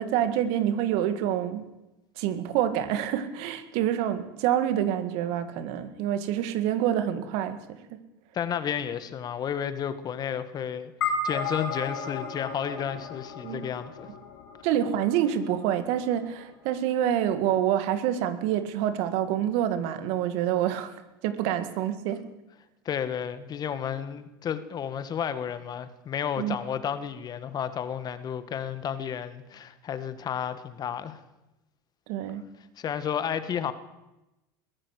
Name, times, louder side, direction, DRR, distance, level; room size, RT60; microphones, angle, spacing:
voice 1, 0.0-1.6 2.2-7.6 7.9-8.0 13.4-13.6 14.6-20.9 21.2-22.3 26.4-26.6 32.1-32.5, right 10 dB, 65° right, 11 dB, 2.1 m, -27 dB
voice 2, 8.3-14.1 22.8-31.2 32.8-33.7, left 8 dB, 35° left, 12 dB, 1.7 m, -32 dB
sound 1, 11.0-15.6, left 3 dB, 85° left, 3.9 m, -34 dB
21.5 x 15.5 x 8.3 m, 0.98 s
hypercardioid pair, 100°, 11 cm